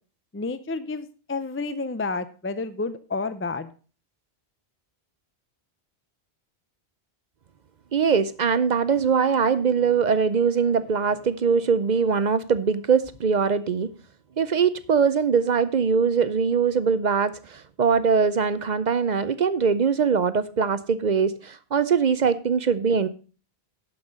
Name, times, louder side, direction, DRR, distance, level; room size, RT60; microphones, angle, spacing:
voice 1, 0.3-3.7, left 3 dB, 20° left, 0.4 m, -30 dB
voice 2, 7.9-13.9 14.4-23.1, right 6 dB, 50° right, 0.6 m, -22 dB
11.5 x 5.7 x 5.2 m
omnidirectional pair, 1.1 m